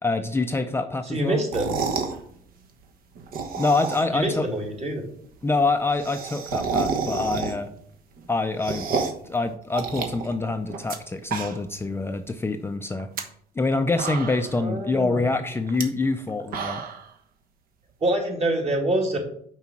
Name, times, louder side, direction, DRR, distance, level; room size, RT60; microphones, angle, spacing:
voice 1, 0.0-1.4 3.6-4.5 5.4-7.7 8.3-8.9 9.3-13.1 13.6-16.8, left 3 dB, 15° left, 6 dB, 0.4 m, -25 dB
voice 2, 1.1-1.7 4.1-5.0 14.6-15.3 18.0-19.2, right 1 dB, 40° right, 1 dB, 2.3 m, -25 dB
sound 1, 1.4-2.2 3.2-4.3 4.6-4.7 4.9-5.0 5.2-5.3 5.6-7.8 8.2-9.3 9.7-11.0 11.2-11.8 12.2-12.3 12.9-13.2 13.7-13.8 14.0-14.6 15.7-15.8 16.3-17.1, right 5 dB, 60° right, 1.1 m, -29 dB
5.7 x 4.9 x 5.9 m, 0.63 s
cardioid pair, 110°, 17 cm